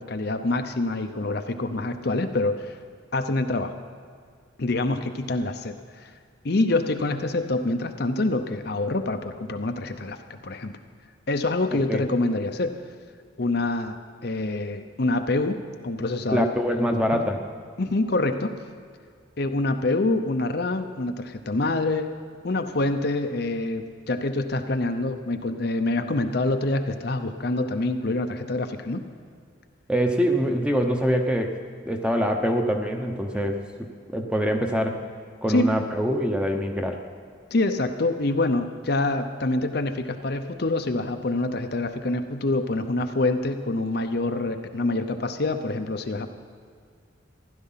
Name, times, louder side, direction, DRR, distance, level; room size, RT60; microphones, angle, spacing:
voice 1, 0.0-2.8 3.1-3.7 4.6-6.1 6.4-10.7 11.3-12.7 13.4-13.9 14.2-15.6 15.8-16.5 17.1-17.2 17.8-18.5 19.4-22.1 22.4-29.0 35.5-35.7 37.5-46.3, left 2 dB, 50° left, 7 dB, 0.7 m, -26 dB
voice 2, 16.3-17.4 29.9-31.6 31.8-33.6 34.1-35.0 35.4-37.0, equal, 5° right, 3 dB, 0.9 m, -24 dB
15.5 x 11.5 x 5.7 m, 2.1 s
head